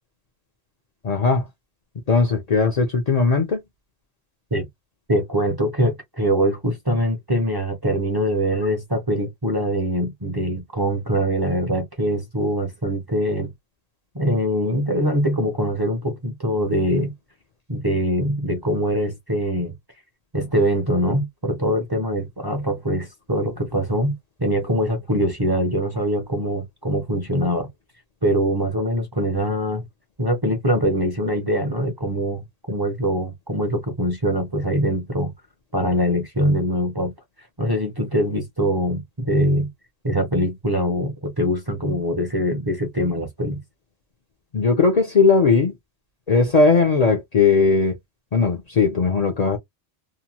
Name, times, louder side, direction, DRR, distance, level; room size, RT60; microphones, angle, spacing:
voice 1, 1.0-1.5 2.1-3.6 44.5-45.7 46.3-48.0 48.3-49.6, left 4 dB, 45° left, 0.6 m, -18 dB
voice 2, 5.1-13.5 14.1-17.1 17.7-19.7 20.3-27.7 28.2-29.8 30.2-35.3 35.7-37.1 37.6-39.7 40.0-43.6, equal, 25° right, 0.6 m, -23 dB
2.9 x 2.1 x 2.8 m
omnidirectional pair, 1.1 m